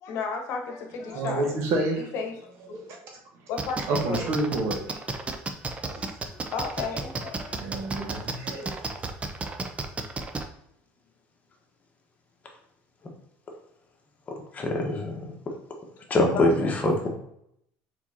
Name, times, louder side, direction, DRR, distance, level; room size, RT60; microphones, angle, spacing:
voice 1, 0.0-1.4 2.0-2.3 2.7-2.8 3.5-3.8 4.1-4.2 4.7-4.8 5.5-5.6 5.8-6.0 6.3-7.6 7.9-8.1 8.4-8.8 16.3-16.7, left 5 dB, 65° left, 1.0 m, -34 dB
voice 2, 1.1-2.1 2.7-3.0 3.9-5.0 5.9-6.1 7.6-8.7, right 2 dB, 65° right, 1.4 m, -29 dB
sound 1, 3.6-10.4, right 3 dB, 25° right, 0.6 m, -32 dB
voice 3, 14.5-15.2 16.1-17.1, left 1 dB, 30° left, 1.3 m, -23 dB
4.5 x 4.1 x 2.8 m
supercardioid pair, 100°, 5 cm